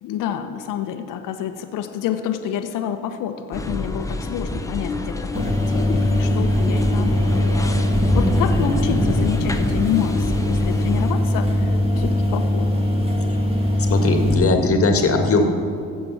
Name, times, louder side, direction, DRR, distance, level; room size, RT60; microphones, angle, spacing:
voice 1, 0.0-7.4 8.1-12.9, left 9 dB, 65° left, 8 dB, 1.1 m, -28 dB
sound 1, 3.5-11.1, left 2 dB, 10° left, 1.0 m, -26 dB
sound 2, 5.3-14.3, left 1 dB, 15° right, 2.7 m, -21 dB
voice 2, 13.9-15.4, left 3 dB, 40° left, 5 dB, 1.8 m, -18 dB
15.0 x 7.0 x 5.9 m, 2.4 s
hypercardioid pair, 55°, 34 cm